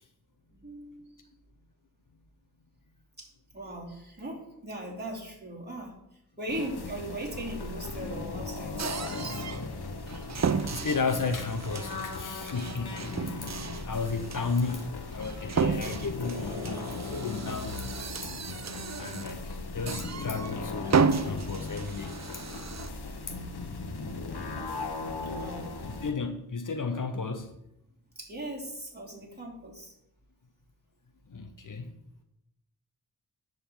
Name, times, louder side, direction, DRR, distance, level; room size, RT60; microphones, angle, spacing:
voice 1, 0.5-1.3 3.2-3.3 3.5-9.4 10.5-10.9 14.0-14.1 23.1-23.5 25.2-25.8 28.1-29.9, right 1 dB, 25° right, 3.1 m, -39 dB
sound 1, 6.5-26.1, left 3 dB, 75° left, 1.2 m, -38 dB
sound 2, 8.8-9.7 10.1-19.5 19.9-20.6 20.9-22.9, right 5 dB, 45° right, 0.6 m, -33 dB
voice 2, 10.6-13.3 13.8-17.8 19.0-22.2 26.0-27.5 31.3-31.9, left 4 dB, 50° left, 0.9 m, -33 dB
10.5 x 4.0 x 7.1 m
wide cardioid pair, 65°, 39 cm